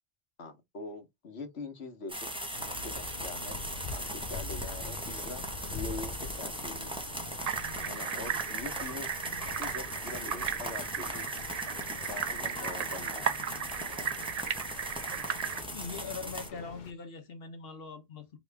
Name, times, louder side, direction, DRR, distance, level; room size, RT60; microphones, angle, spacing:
voice 1, 0.4-2.3 2.7-3.6 3.9-5.4 5.7-6.9 7.9-9.1 9.4-11.3 12.0-13.3, left 3 dB, 85° left, 1.4 m, -43 dB
sound 1, 2.1-16.5, right 1 dB, 5° right, 0.9 m, -39 dB
sound 2, 2.5-16.9, left 4 dB, 50° left, 0.8 m, -45 dB
sound 3, 7.5-15.6, right 8 dB, 50° right, 0.5 m, -36 dB
voice 2, 15.7-18.4, left 5 dB, 65° left, 1.1 m, -42 dB
4.9 x 3.1 x 3.4 m
omnidirectional pair, 1.1 m